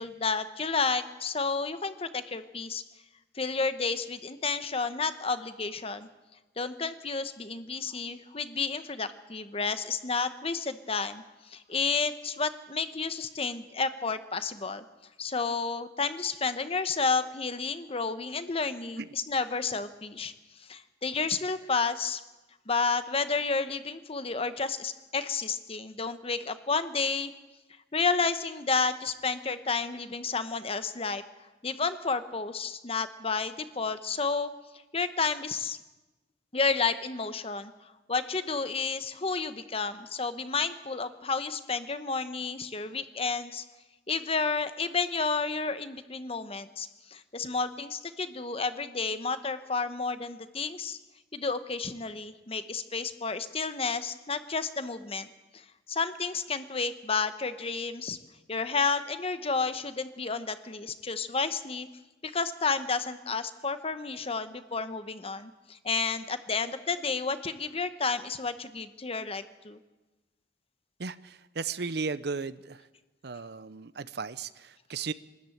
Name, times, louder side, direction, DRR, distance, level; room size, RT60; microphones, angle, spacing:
voice 1, 0.0-2.8 3.3-6.1 6.6-14.8 15.2-20.3 20.6-22.2 22.7-27.3 27.9-31.2 31.6-34.5 34.9-35.8 36.5-37.7 38.1-43.6 44.1-51.0 51.3-55.3 55.5-58.2 58.5-61.9 62.2-69.8, left 4 dB, 30° left, 11 dB, 1.0 m, -31 dB
voice 2, 71.0-72.8 73.2-75.1, right 4 dB, 60° right, 15 dB, 0.7 m, -35 dB
24.5 x 13.0 x 9.1 m, 1.1 s
head